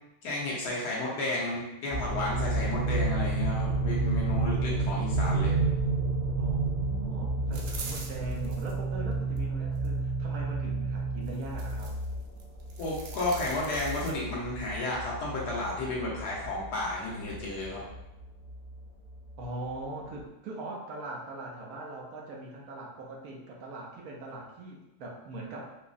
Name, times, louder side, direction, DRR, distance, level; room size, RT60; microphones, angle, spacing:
voice 1, 0.2-5.5 12.8-17.8, left 2 dB, 85° left, -4 dB, 1.5 m, -32 dB
sound 1, 1.9-19.7 20.2-20.3, right 2 dB, 15° left, 0.4 m, -33 dB
sound 2, 2.1-11.9, right 6 dB, 35° right, 1.1 m, -34 dB
voice 2, 6.4-11.9 19.4-25.8, right 2 dB, 70° right, -1 dB, 1.1 m, -41 dB
sound 3, 7.5-8.7 9.3-9.9 11.3-12.1 12.4-14.1, right 4 dB, 90° right, 0.5 m, -44 dB
4.7 x 2.0 x 2.6 m, 0.92 s
omnidirectional pair, 1.6 m